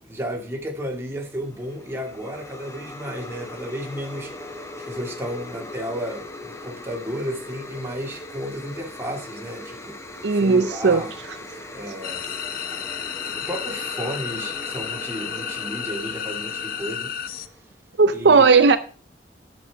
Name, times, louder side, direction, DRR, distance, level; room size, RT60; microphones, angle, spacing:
voice 1, 0.0-10.0 10.3-11.1 11.7-12.6 13.2-17.1 18.1-18.5, equal, 15° right, 2.3 m, -33 dB
sound 1, 1.2-17.6, left 1 dB, 15° left, 1.1 m, -40 dB
voice 2, 10.2-11.0 18.0-18.8, right 4 dB, 70° right, 0.6 m, -16 dB
sound 2, 12.0-17.5, left 8 dB, 55° left, 0.6 m, -32 dB
11.0 x 6.9 x 4.7 m
head